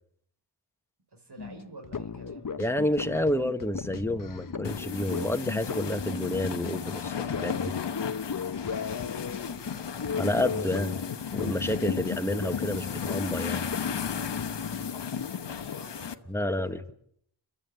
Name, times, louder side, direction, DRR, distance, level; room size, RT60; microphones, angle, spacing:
voice 1, 1.1-2.5 8.7-9.1 15.0-16.6 16.9-17.0, right 2 dB, 70° right, 4 dB, 5.2 m, -49 dB
sound 1, 1.4-14.9, left 6 dB, 50° left, 1.0 m, -37 dB
voice 2, 2.6-7.7 10.2-11.0 11.3-13.7 16.3-16.9, left 1 dB, 5° left, 7 dB, 1.5 m, -29 dB
sound 2, 4.6-16.1, left 7 dB, 90° left, 1.1 m, -35 dB
29.5 x 13.0 x 9.1 m, 0.69 s
wide cardioid pair, 100°, 41 cm